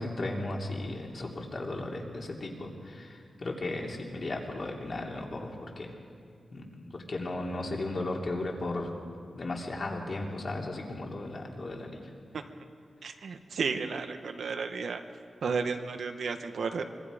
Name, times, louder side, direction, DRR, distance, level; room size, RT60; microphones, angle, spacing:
voice 1, 0.0-5.9 6.5-6.6 6.9-8.9 9.3-12.1, left 2 dB, 40° left, 0 dB, 2.9 m, -35 dB
voice 2, 13.0-15.0 15.4-16.8, right 5 dB, 65° right, 7 dB, 1.3 m, -33 dB
25.0 x 24.0 x 5.1 m, 2.2 s
wide cardioid pair, 170°, 0 cm